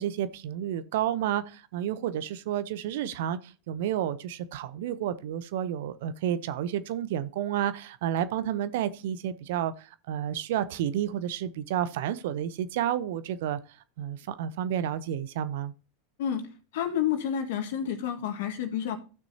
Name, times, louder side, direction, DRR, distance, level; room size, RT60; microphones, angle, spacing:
voice 1, 0.0-13.6 14.0-15.7, right 10 dB, 65° right, 0.8 m, -31 dB
voice 2, 16.7-19.0, left 9 dB, 65° left, 1.8 m, -29 dB
15.0 x 6.2 x 2.8 m
hypercardioid pair, 90°, 0 cm